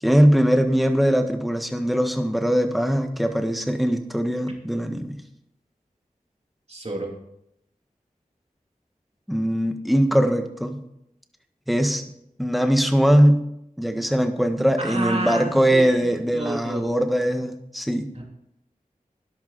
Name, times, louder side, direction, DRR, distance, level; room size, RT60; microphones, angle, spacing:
voice 1, 0.0-5.2 9.3-10.8 11.7-12.0 12.4-13.4 13.8-18.1, equal, ahead, 6 dB, 1.5 m, -21 dB
voice 2, 6.7-7.2 14.8-16.9, right 2 dB, 45° right, 0 dB, 3.0 m, -30 dB
13.0 x 11.0 x 4.1 m, 0.78 s
wide cardioid pair, 45°, 15 cm